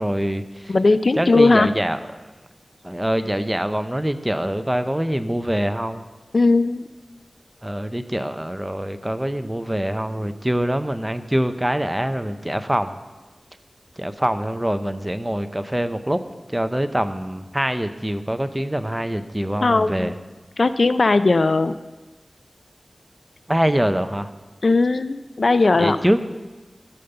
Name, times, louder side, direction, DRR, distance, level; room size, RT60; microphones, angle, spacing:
voice 1, 0.0-0.8 1.2-2.0 2.8-6.0 7.6-13.0 14.0-16.2 16.5-20.1 23.5-24.3 25.8-26.2, equal, 10° right, 10 dB, 0.6 m, -24 dB
voice 2, 0.7-1.7 6.3-6.8 19.6-20.1 20.6-21.7 24.6-26.0, left 3 dB, 70° left, 13 dB, 0.4 m, -18 dB
14.0 x 5.2 x 6.8 m, 1.2 s
wide cardioid pair, 55°, 0 cm